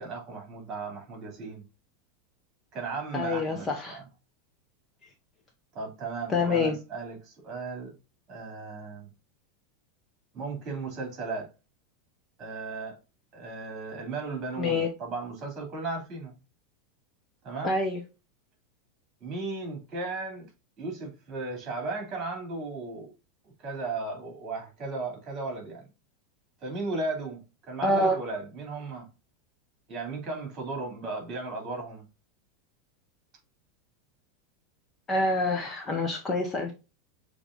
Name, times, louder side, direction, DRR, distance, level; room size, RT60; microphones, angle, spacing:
voice 1, 0.0-1.6 2.7-4.0 5.7-7.9 8.3-9.1 10.3-11.5 12.4-13.0 13.3-16.3 17.4-17.8 19.2-20.5 20.8-23.1 23.6-25.9 26.6-27.4 27.7-29.1 29.9-32.0, right 3 dB, 30° right, 2.7 m, -35 dB
voice 2, 3.1-4.0 6.3-6.8 14.6-14.9 17.6-18.0 27.8-28.2 35.1-36.7, left 2 dB, 20° left, 0.9 m, -26 dB
6.6 x 2.9 x 2.5 m
supercardioid pair, 150°, 0 cm